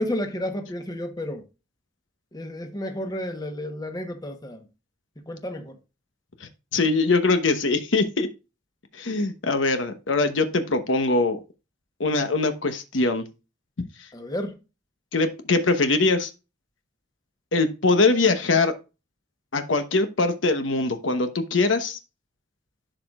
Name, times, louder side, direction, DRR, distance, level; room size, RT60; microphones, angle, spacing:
voice 1, 0.0-1.4 2.3-4.7 5.3-5.8 14.1-14.6, left 1 dB, 20° left, 1.0 m, -31 dB
voice 2, 6.7-8.3 9.0-11.4 12.0-13.3 15.1-16.3 17.5-18.7 19.5-22.0, left 3 dB, 80° left, 1.0 m, -22 dB
11.5 x 5.0 x 2.4 m
head